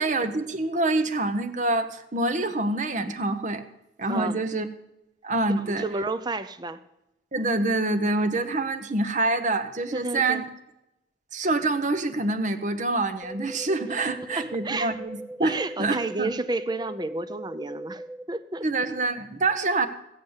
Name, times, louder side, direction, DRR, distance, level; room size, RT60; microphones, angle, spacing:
voice 1, 0.0-3.6 4.0-4.7 5.2-5.8 7.3-10.5 11.3-16.3 18.6-19.9, right 2 dB, 45° right, 10 dB, 1.0 m, -26 dB
voice 2, 4.1-4.4 5.6-6.8 9.9-10.4 14.4-15.0 15.4-18.7, right 3 dB, 25° right, 14 dB, 0.6 m, -31 dB
sound 1, 13.2-18.2, right 1 dB, 5° right, 1.0 m, -40 dB
16.5 x 7.9 x 7.3 m, 0.90 s
head